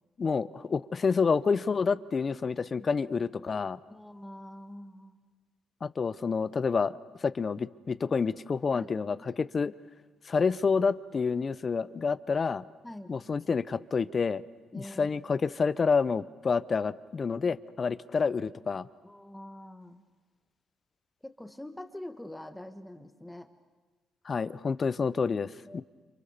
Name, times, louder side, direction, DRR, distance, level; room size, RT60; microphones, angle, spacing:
voice 1, 0.2-3.8 5.8-9.7 10.3-12.6 13.1-14.4 14.7-18.9 24.2-25.8, left 5 dB, 40° left, 17 dB, 0.8 m, -28 dB
voice 2, 3.9-5.2 8.7-8.9 9.2-9.4 12.8-13.1 14.7-15.2 19.0-20.0 21.2-23.5 25.7-25.8, left 1 dB, 10° left, 8 dB, 2.1 m, -45 dB
30.0 x 27.0 x 6.9 m, 1.3 s
cardioid pair, 90°, 0 cm